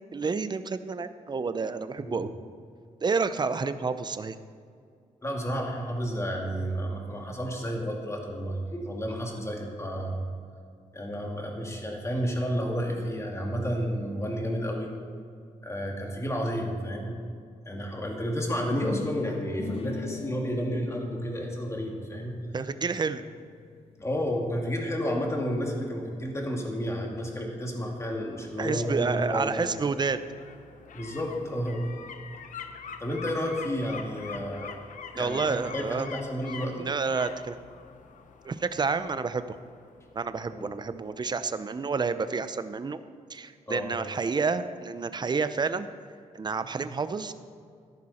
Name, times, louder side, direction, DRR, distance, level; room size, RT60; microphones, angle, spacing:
voice 1, 0.1-2.3 3.0-4.4 22.5-23.2 28.6-30.2 35.1-36.1 36.7-37.6 38.4-39.4 40.1-43.0 43.3-45.9 46.3-47.3, right 4 dB, 35° right, 12 dB, 0.7 m, -29 dB
voice 2, 2.0-2.3 5.2-10.2 10.9-14.9 15.6-17.2 17.6-22.4 24.0-29.7 30.9-31.9 33.0-34.8 35.1-36.9 40.5-40.7 43.7-43.9 46.8-46.9, equal, 20° left, 0 dB, 2.5 m, -31 dB
sound 1, 18.8-24.7, left 6 dB, 45° left, 0.8 m, -41 dB
sound 2, 28.0-40.8 41.2-41.3, left 6 dB, 75° left, 0.9 m, -45 dB
14.0 x 11.0 x 4.4 m, 2.3 s
cardioid pair, 95°, 13 cm